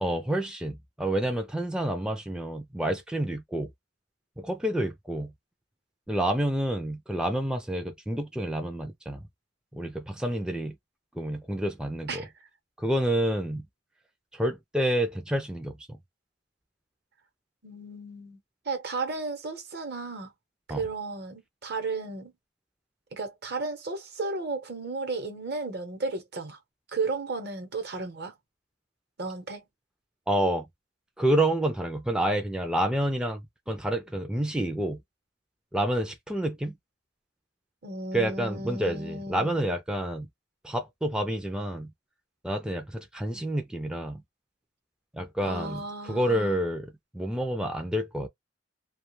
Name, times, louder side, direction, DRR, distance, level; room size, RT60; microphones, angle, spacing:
voice 1, 0.0-3.7 4.4-5.3 6.1-9.3 9.7-10.7 11.1-12.3 12.8-13.7 14.3-16.0 20.7-20.8 30.3-30.7 31.2-35.0 35.7-36.8 38.1-40.3 40.6-41.9 42.4-44.2 45.1-48.3, right 1 dB, 5° right, 0.3 m, -29 dB
voice 2, 17.6-18.4 18.6-20.3 20.7-22.3 23.1-26.6 26.9-28.3 29.2-29.6 37.8-39.6 45.4-46.6, right 3 dB, 60° right, 0.9 m, -34 dB
2.3 x 2.3 x 3.1 m
head